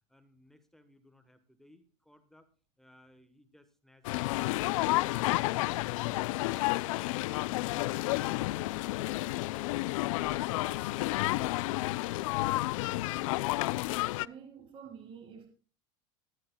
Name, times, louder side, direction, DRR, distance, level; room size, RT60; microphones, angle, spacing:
voice 1, 0.1-2.5 2.8-4.3 14.8-14.9, left 1 dB, ahead, 1.1 m, -62 dB
sound 1, 4.0-14.3, left 19 dB, 75° left, 0.4 m, -31 dB
voice 2, 10.4-10.9 12.9-13.4 14.1-15.5, right 7 dB, 30° right, 3.1 m, -51 dB
18.0 x 10.5 x 2.2 m
supercardioid pair, 150°, 17 cm